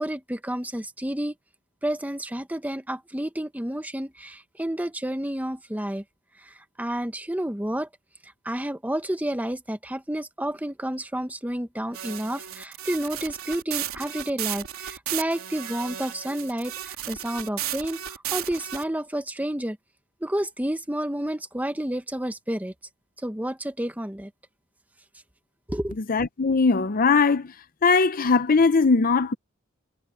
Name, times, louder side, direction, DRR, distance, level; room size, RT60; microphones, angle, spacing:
voice 1, 0.0-1.3 1.8-6.0 6.4-7.9 8.4-19.8 20.2-22.7 23.2-24.3 25.7-25.9, right 1 dB, 10° right, 1.1 m, -30 dB
sound 1, 11.9-18.8, right 11 dB, 85° right, 3.1 m, -34 dB
voice 2, 26.1-27.5 27.8-29.3, left 4 dB, 45° left, 0.6 m, -20 dB
head